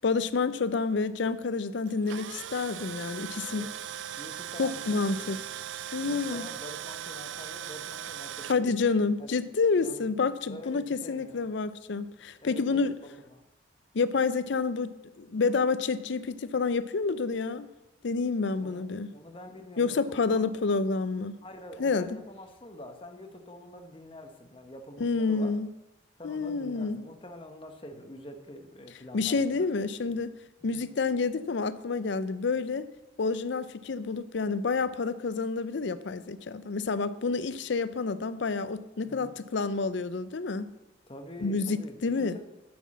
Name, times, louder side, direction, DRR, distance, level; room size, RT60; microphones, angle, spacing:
voice 1, 0.0-3.7 4.6-5.4 5.9-6.5 8.5-13.0 13.9-17.7 18.0-19.1 19.8-21.3 21.8-22.2 25.0-25.7 26.2-27.0 29.1-30.3 30.6-32.9 33.2-40.7 41.4-42.4, left 4 dB, 70° left, 14 dB, 0.5 m, -29 dB
Tools, 1.9-8.6, right 10 dB, 80° right, 0.4 m, -39 dB
voice 2, 4.2-5.4 6.0-8.9 9.2-9.3 9.8-10.1 10.5-11.5 12.4-13.4 18.6-18.8 19.1-20.5 21.4-25.5 26.2-29.7 30.6-30.8 39.0-39.3 41.1-42.4, left 1 dB, 30° left, 5 dB, 1.0 m, -46 dB
9.3 x 6.1 x 7.3 m, 0.97 s
head